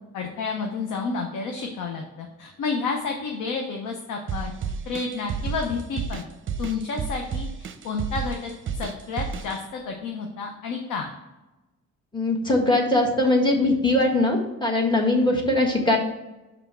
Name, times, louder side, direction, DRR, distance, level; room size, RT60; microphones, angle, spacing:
voice 1, 0.1-4.5 4.9-6.2 6.6-7.5 7.8-11.1, left 4 dB, 85° left, 2 dB, 0.8 m, -30 dB
sound 1, 4.3-9.6, right 6 dB, 40° right, 0.6 m, -31 dB
voice 2, 12.1-16.0, left 2 dB, 15° left, -1 dB, 1.5 m, -21 dB
5.9 x 3.5 x 5.5 m, 1.0 s
cardioid pair, 90°, 30 cm